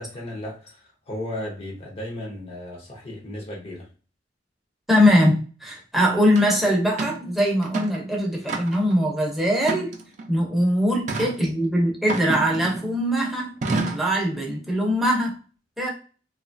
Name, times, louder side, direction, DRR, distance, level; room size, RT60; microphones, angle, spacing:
voice 1, 0.0-3.9, left 1 dB, 35° left, 0.7 m, -35 dB
voice 2, 4.9-9.9 10.3-15.3 15.8-15.9, equal, ahead, 0.7 m, -22 dB
sound 1, 6.4-6.5 7.0-7.2 7.6-8.0 8.5-8.9 9.6-10.3 11.1-11.4 12.1-13.0 13.6-14.1, right 3 dB, 45° right, 0.4 m, -28 dB
2.9 x 2.2 x 2.5 m
head